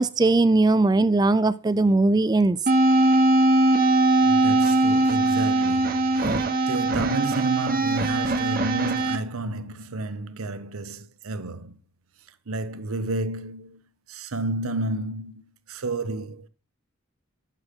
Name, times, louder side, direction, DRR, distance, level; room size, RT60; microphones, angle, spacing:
voice 1, 0.0-2.6, right 2 dB, 20° right, 0.3 m, -19 dB
sound 1, 2.7-9.2, right 2 dB, 45° right, 1.0 m, -21 dB
voice 2, 4.2-11.8 12.5-13.8 14.1-16.5, right 2 dB, 85° right, 0.8 m, -31 dB
10.5 x 6.4 x 3.6 m
head